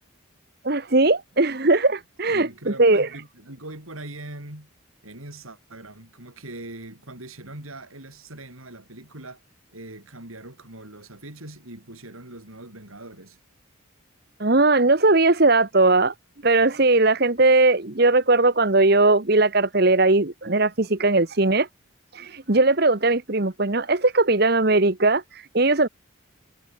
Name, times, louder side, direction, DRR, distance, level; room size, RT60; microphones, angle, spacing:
voice 1, 0.6-3.1 14.4-16.1 16.4-21.7 22.1-25.9, right 2 dB, 50° right, 1.3 m, -19 dB
voice 2, 2.3-4.7 5.0-9.4 9.7-13.4, right 2 dB, 90° right, 6.2 m, -41 dB
head